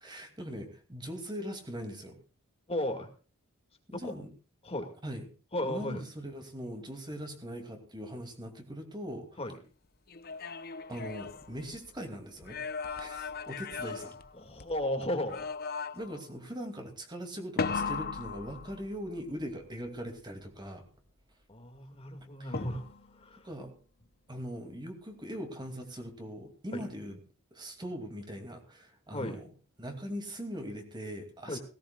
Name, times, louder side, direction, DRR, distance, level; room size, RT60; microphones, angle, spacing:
voice 1, 0.0-2.2 3.9-4.3 5.0-5.2 5.6-9.4 10.9-12.6 13.0-14.2 15.9-20.9 22.4-22.5 23.4-23.7 24.3-27.2 27.5-29.5 29.8-31.6, equal, 20° right, 5 dB, 2.5 m, -41 dB
voice 2, 2.7-3.1 3.9-4.1 4.6-4.9 5.5-6.0 9.4-9.6 14.4-15.5 21.5-22.8 23.2-23.5 26.7-26.9 29.1-29.4 31.5-31.6, left 1 dB, 25° left, 4 dB, 2.1 m, -34 dB
sound 1, 10.1-12.0 12.4-14.8 15.3-16.2 17.6-19.2 22.5-23.2, left 5 dB, 45° left, 0.8 m, -37 dB
17.5 x 17.5 x 2.4 m, 0.37 s
head